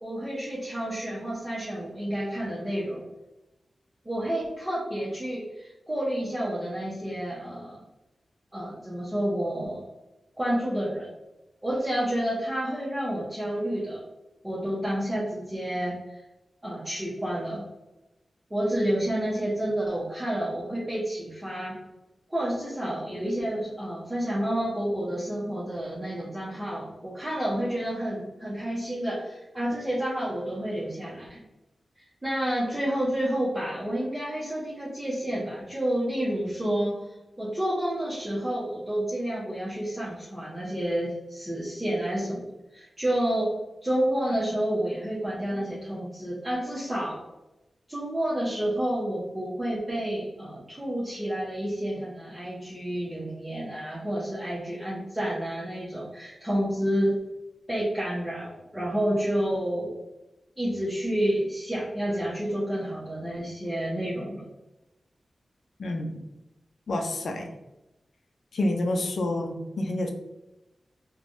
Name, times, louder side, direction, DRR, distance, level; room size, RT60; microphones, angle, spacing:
voice 1, 0.0-3.0 4.0-7.8 8.5-9.8 10.4-11.1 11.6-14.0 14.4-16.2 16.6-17.6 18.5-21.8 22.3-31.4 32.0-37.0 37.4-43.6 43.8-47.2 47.9-57.2 57.7-59.9 60.6-64.5, right 1 dB, 15° right, -7 dB, 0.8 m, -29 dB
voice 2, 65.8-66.2 66.9-67.5 68.5-70.1, left 1 dB, 75° left, 3 dB, 0.4 m, -28 dB
3.2 x 2.2 x 2.6 m, 0.98 s
wide cardioid pair, 70°, 0 cm